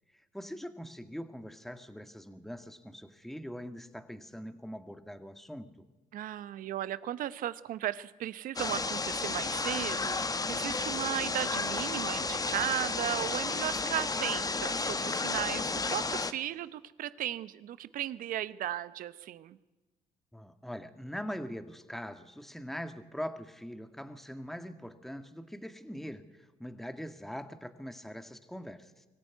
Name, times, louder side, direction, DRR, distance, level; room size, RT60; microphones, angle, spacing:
voice 1, 0.1-5.9 20.3-29.1, equal, ahead, 8 dB, 1.8 m, -42 dB
voice 2, 6.1-19.6, right 12 dB, 70° right, 16 dB, 0.9 m, -36 dB
sound 1, 8.6-16.3, left 3 dB, 25° left, 1.2 m, -32 dB
24.0 x 14.0 x 9.4 m, 1.1 s
supercardioid pair, 60°, 15 cm